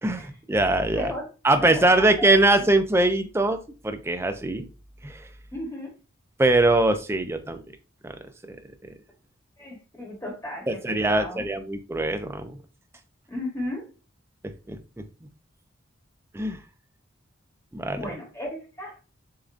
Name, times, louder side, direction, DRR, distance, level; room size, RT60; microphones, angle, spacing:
voice 1, 0.0-1.1 1.4-4.7 5.0-5.3 6.4-7.6 8.0-8.2 10.7-12.5 14.4-14.8 16.3-16.6 17.7-18.1, right 2 dB, 15° right, 7 dB, 0.4 m, -22 dB
voice 2, 0.9-1.3 1.6-2.7 5.5-5.9 9.6-11.5 13.3-13.8 17.9-19.0, left 1 dB, 15° left, -2 dB, 1.0 m, -35 dB
6.7 x 2.6 x 2.4 m, 0.33 s
head